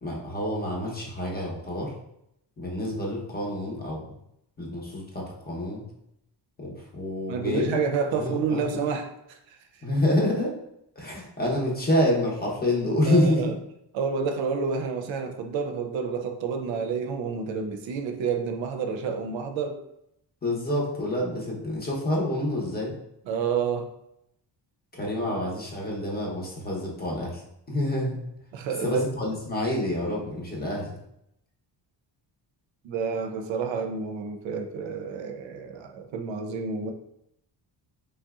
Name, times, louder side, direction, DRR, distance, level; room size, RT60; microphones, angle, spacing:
voice 1, 0.0-1.9 2.6-4.2 4.6-5.8 6.6-7.8 8.1-8.8 9.8-10.5 11.0-13.5 20.4-22.9 24.9-28.2 28.8-30.9, left 1 dB, 20° left, -2 dB, 0.7 m, -27 dB
voice 2, 7.3-9.6 13.1-13.5 13.9-19.8 23.3-23.9 25.3-25.5 28.5-29.1 32.8-36.9, right 5 dB, 80° right, 4 dB, 0.5 m, -29 dB
3.3 x 2.6 x 2.3 m, 0.79 s
cardioid pair, 115°, 45 cm